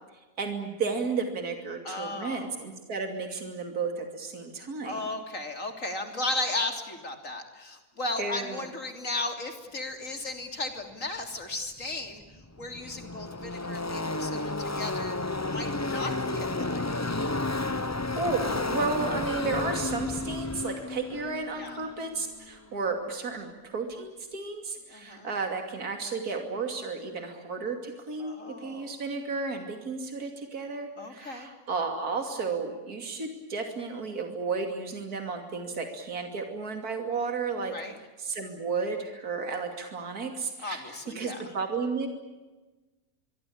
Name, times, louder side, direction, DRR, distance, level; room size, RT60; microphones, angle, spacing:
voice 1, 0.4-5.0 8.2-8.7 18.1-37.7 38.2-42.1, right 4 dB, 70° right, 4 dB, 3.2 m, -33 dB
voice 2, 1.8-2.6 4.8-12.2 12.6-15.2 15.5-17.3 21.5-21.8 24.9-25.3 28.2-29.0 31.0-31.5 37.7-38.0 40.6-41.4, left 2 dB, 55° left, 5 dB, 3.7 m, -35 dB
Car passing by / Race car auto racing, 11.8-11.9 12.1-22.7, left 2 dB, 15° left, 0.5 m, -32 dB
25.5 x 23.5 x 8.7 m, 1.2 s
omnidirectional pair, 1.7 m